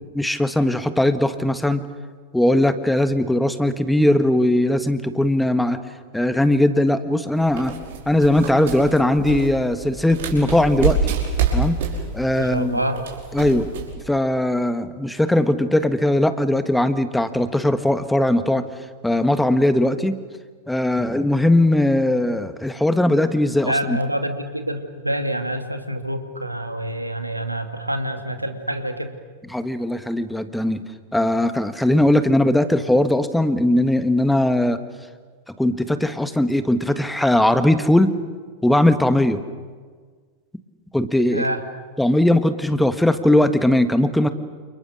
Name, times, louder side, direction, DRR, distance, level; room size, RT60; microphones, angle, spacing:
voice 1, 0.1-1.8 2.3-5.8 6.1-7.7 8.1-11.1 11.5-11.8 12.1-12.8 13.3-13.7 14.1-18.6 19.0-20.2 20.7-24.0 29.5-30.8 31.1-34.8 35.6-38.1 38.6-39.4 40.9-41.5 42.0-44.3, left 1 dB, 5° left, 11 dB, 1.5 m, -19 dB
sound 1, 7.4-13.9, right 5 dB, 55° right, 5.4 m, -27 dB
voice 2, 12.4-13.1 23.6-29.1 41.3-41.6, right 1 dB, 85° right, 7 dB, 2.1 m, -26 dB
29.5 x 28.5 x 6.5 m, 1.5 s
figure-of-eight pair, 90°, 0 cm